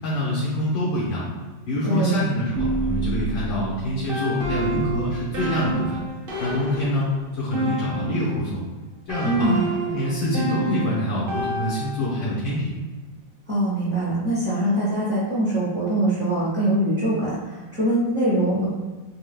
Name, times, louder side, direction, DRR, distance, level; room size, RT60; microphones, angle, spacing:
voice 1, 0.0-1.2 1.7-6.0 6.4-7.1 7.4-8.6 9.1-9.5 9.9-12.7, equal, 80° left, -8 dB, 1.7 m, -25 dB
voice 2, 1.8-2.2 9.2-9.6 13.5-18.7, right 1 dB, 30° right, -10 dB, 1.3 m, -23 dB
sound 1, 2.6-8.5 9.1-12.3, right 2 dB, 70° right, 0.5 m, -29 dB
4.4 x 2.3 x 3.3 m, 1.3 s
omnidirectional pair, 2.1 m